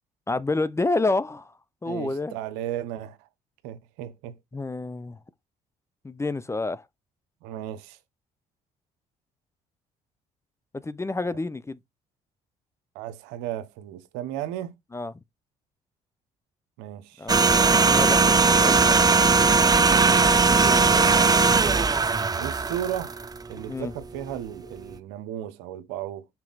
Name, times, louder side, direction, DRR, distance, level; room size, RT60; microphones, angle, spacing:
voice 1, 0.3-1.5 1.8-2.3 4.5-5.2 6.0-6.8 10.8-11.8 14.9-15.1 17.2-19.4 20.4-21.1 23.7-23.9, left 3 dB, 15° left, 0.5 m, -29 dB
voice 2, 1.8-3.3 3.6-4.4 7.4-8.0 12.9-14.7 16.8-17.3 21.0-21.3 22.4-26.3, right 11 dB, 85° right, 0.9 m, -35 dB
sound 1, 17.3-23.6 23.9-24.1, right 4 dB, 20° right, 0.6 m, -19 dB
5.8 x 4.3 x 4.0 m
hypercardioid pair, 60°, 17 cm